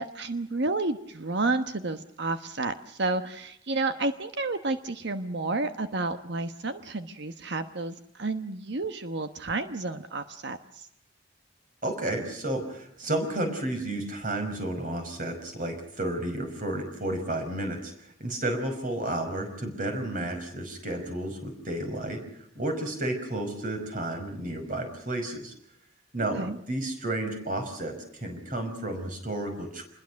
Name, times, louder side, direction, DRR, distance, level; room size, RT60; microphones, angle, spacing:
voice 1, 0.0-10.9 26.4-26.6, right 3 dB, 60° right, 9 dB, 1.2 m, -31 dB
voice 2, 11.8-22.2 22.5-25.5 26.1-29.8, right 1 dB, 45° right, 5 dB, 5.5 m, -32 dB
26.5 x 21.5 x 6.4 m, 0.70 s
head